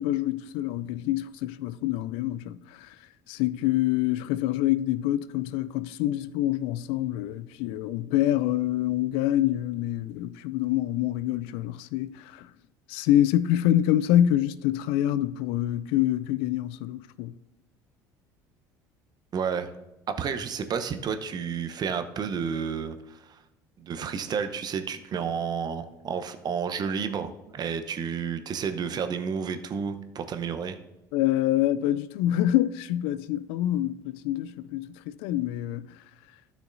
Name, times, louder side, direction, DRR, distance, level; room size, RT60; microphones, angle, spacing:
voice 1, 0.0-2.9 3.3-12.5 12.9-17.3 31.1-35.9, left 13 dB, 70° left, 0.4 m, -26 dB
voice 2, 19.3-19.7 20.2-23.4 23.8-30.8, right 6 dB, 45° right, 0.8 m, -31 dB
12.5 x 6.3 x 2.6 m
hypercardioid pair, 65°, 10 cm